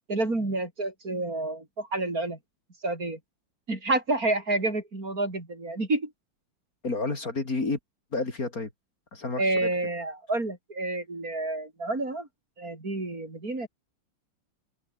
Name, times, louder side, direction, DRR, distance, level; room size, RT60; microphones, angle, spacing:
voice 1, 0.1-2.4 2.8-3.2 3.7-6.1 9.4-12.3 12.6-13.7, right 2 dB, 50° right, 5.3 m, -29 dB
voice 2, 6.8-7.8 8.1-8.7 9.1-9.7, left 3 dB, 50° left, 4.1 m, -30 dB
open air
omnidirectional pair, 2.0 m